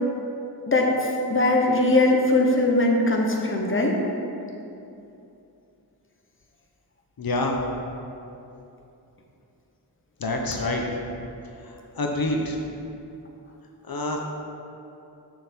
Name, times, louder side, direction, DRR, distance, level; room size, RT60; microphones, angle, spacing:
voice 1, 1.3-4.0, left 2 dB, 30° left, 0 dB, 1.0 m, -20 dB
voice 2, 7.2-7.6 10.2-10.8 11.9-12.6 13.9-14.2, left 2 dB, 60° left, 1 dB, 0.9 m, -26 dB
6.7 x 6.5 x 4.5 m, 2.8 s
wide cardioid pair, 80°, 40 cm